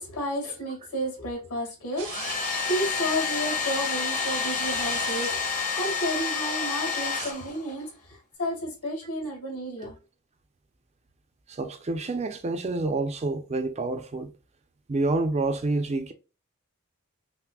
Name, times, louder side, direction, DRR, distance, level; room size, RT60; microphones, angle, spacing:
voice 1, 0.0-10.0, equal, 80° left, 2.0 m, -32 dB
Domestic sounds home sounds, 2.0-7.9, left 5 dB, 35° left, 1.0 m, -29 dB
sound 1, 2.0-2.6 4.5-5.3 7.0-7.5, right 7 dB, 80° right, 0.8 m, -41 dB
voice 2, 11.5-14.3 14.9-16.1, right 2 dB, 30° right, 0.4 m, -28 dB
5.7 x 2.0 x 2.2 m
head